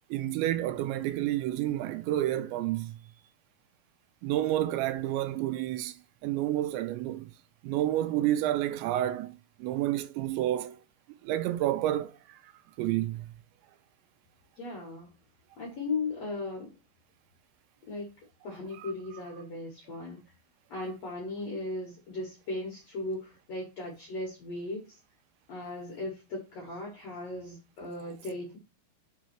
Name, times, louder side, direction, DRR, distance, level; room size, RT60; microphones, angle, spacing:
voice 1, 0.1-3.0 4.2-7.3 7.6-10.8 11.2-12.5 12.8-13.3 18.8-18.9, right 13 dB, 85° right, 2.8 m, -30 dB
voice 2, 14.6-15.1 15.6-16.7 17.9-18.1 18.4-20.2 20.7-25.0 25.5-28.6, left 2 dB, 65° left, 1.7 m, -37 dB
6.3 x 3.9 x 4.3 m
omnidirectional pair, 5.3 m